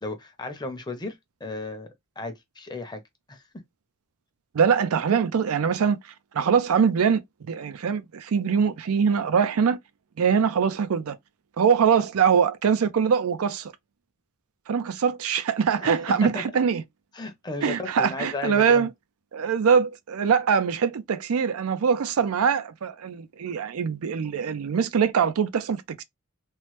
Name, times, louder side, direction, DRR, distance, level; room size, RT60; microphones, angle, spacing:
voice 1, 0.0-1.9 2.2-3.0 3.3-3.6 15.8-16.4 17.1-18.9, left 2 dB, 20° left, 0.6 m, -34 dB
voice 2, 4.5-9.8 10.2-11.2 11.6-13.7 14.7-16.8 17.6-18.9 19.3-26.0, right 6 dB, 90° right, 0.4 m, -23 dB
3.0 x 2.0 x 3.1 m
head